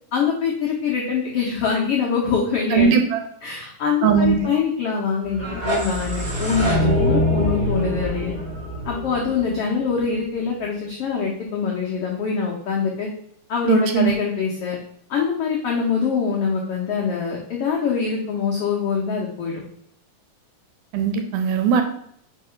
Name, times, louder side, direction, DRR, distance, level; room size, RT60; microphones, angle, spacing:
voice 1, 0.1-3.0 3.4-8.3 8.8-13.1 13.5-14.8 15.1-19.6, left 6 dB, 85° left, -2 dB, 1.3 m, -24 dB
voice 2, 2.7-3.2 4.0-4.4 13.7-14.1 20.9-21.8, right 6 dB, 75° right, 6 dB, 2.1 m, -18 dB
sound 1, 5.3-10.2, equal, 50° right, 0.6 m, -24 dB
4.7 x 4.7 x 5.6 m, 0.68 s
omnidirectional pair, 4.0 m